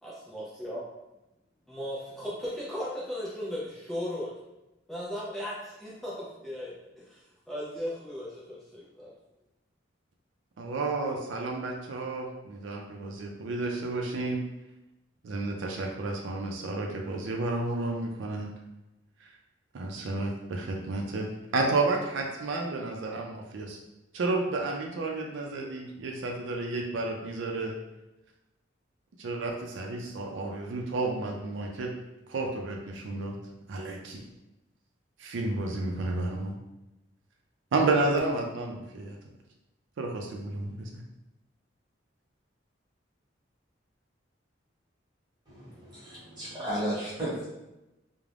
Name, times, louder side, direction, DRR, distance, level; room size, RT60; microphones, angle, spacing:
voice 1, 0.0-0.8 1.7-4.3 4.9-9.1, equal, ahead, -8 dB, 0.4 m, -37 dB
voice 2, 10.6-14.4 15.2-18.5 19.7-21.3 21.5-23.8 24.1-27.8 29.2-31.9 32.3-33.4 33.7-34.2 35.2-36.6 37.7-39.2 40.0-41.0, right 2 dB, 80° right, 1 dB, 0.4 m, -31 dB
voice 3, 45.5-47.5, equal, 25° right, -9 dB, 1.1 m, -34 dB
2.4 x 2.0 x 3.2 m, 0.97 s
head